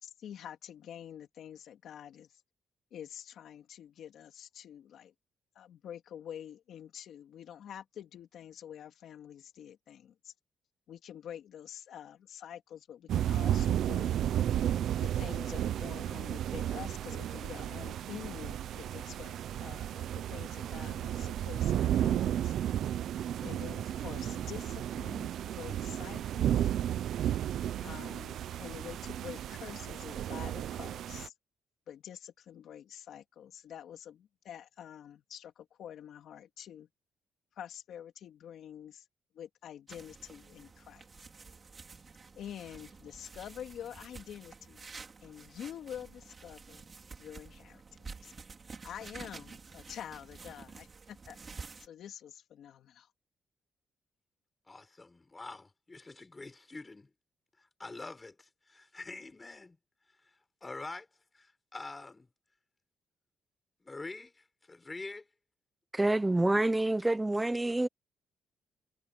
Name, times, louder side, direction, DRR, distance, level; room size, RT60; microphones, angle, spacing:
voice 1, 0.0-2.3 2.9-5.1 5.5-10.3 10.9-14.1 15.0-22.6 23.4-25.3 25.6-26.6 27.8-31.3 31.9-36.9 37.6-39.0 39.3-41.1 42.4-44.8 45.2-46.9 47.2-48.3 48.8-51.4 51.8-53.1, left 9 dB, 60° left, 2.8 m, -47 dB
sound 1, 13.1-31.3, right 11 dB, 65° right, 0.7 m, -33 dB
sound 2, 39.9-51.9, right 4 dB, 25° right, 4.5 m, -50 dB
voice 2, 54.7-57.1 57.6-59.8 60.6-61.1 61.3-62.3 63.8-65.3, left 3 dB, 15° left, 5.2 m, -45 dB
voice 3, 65.9-67.9, right 2 dB, 10° right, 0.7 m, -27 dB
cardioid pair, 175°, 0 cm